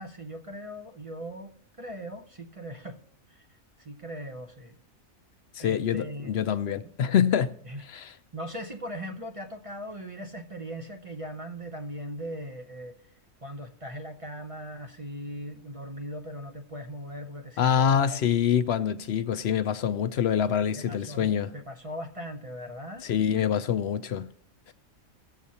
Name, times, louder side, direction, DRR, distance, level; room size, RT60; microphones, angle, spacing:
voice 1, 0.0-3.0 3.3-3.4 3.8-4.8 5.6-6.4 7.6-7.8 8.3-13.0 13.4-18.3 20.8-23.1, equal, 30° right, 0.7 m, -39 dB
voice 2, 5.6-7.5 7.9-8.1 17.6-21.5 23.0-24.3 24.7-24.8, left 8 dB, 65° left, 0.7 m, -25 dB
18.0 x 7.4 x 2.8 m
omnidirectional pair, 1.4 m